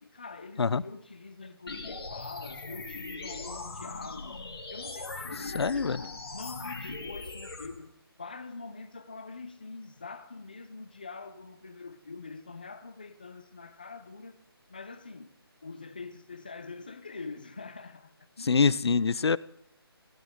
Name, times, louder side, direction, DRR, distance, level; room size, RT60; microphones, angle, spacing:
voice 1, 0.0-7.9 8.2-14.4 14.7-15.4 15.6-18.7, left 4 dB, 20° left, 0.5 m, -44 dB
sound 1, 1.7-7.7, left 3 dB, 70° left, 3.4 m, -40 dB
voice 2, 5.5-6.0 18.4-19.4, left 5 dB, 85° left, 0.6 m, -25 dB
20.5 x 16.5 x 3.6 m
hypercardioid pair, 180°, 13 cm